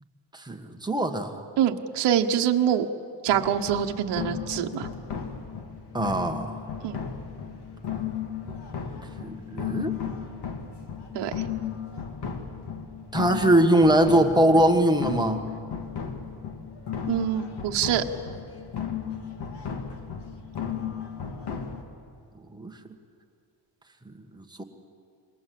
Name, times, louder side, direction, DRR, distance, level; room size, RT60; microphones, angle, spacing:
voice 1, 0.3-1.4 5.9-6.5 9.2-9.9 13.1-15.4 22.6-22.7 24.1-24.6, right 1 dB, 10° right, 3 dB, 1.4 m, -22 dB
voice 2, 1.6-2.9 3.2-4.9 6.8-7.0 11.1-11.3 17.1-18.0, right 10 dB, 60° right, 4 dB, 1.2 m, -25 dB
sound 1, 3.3-21.8, left 7 dB, 55° left, 2.3 m, -35 dB
27.5 x 21.5 x 7.7 m, 2.3 s
cardioid pair, 160°, 48 cm